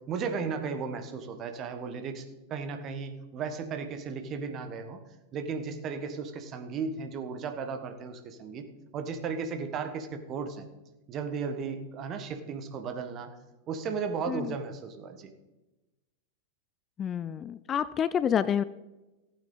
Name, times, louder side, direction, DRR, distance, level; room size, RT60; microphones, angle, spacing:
voice 1, 0.0-5.0 5.3-8.6 8.9-10.7 11.1-13.3 13.7-15.3, right 5 dB, 30° right, 7 dB, 1.5 m, -35 dB
voice 2, 17.0-18.6, left 8 dB, 25° left, 16 dB, 0.3 m, -28 dB
15.0 x 9.0 x 4.0 m, 1.1 s
figure-of-eight pair, 90°, 0 cm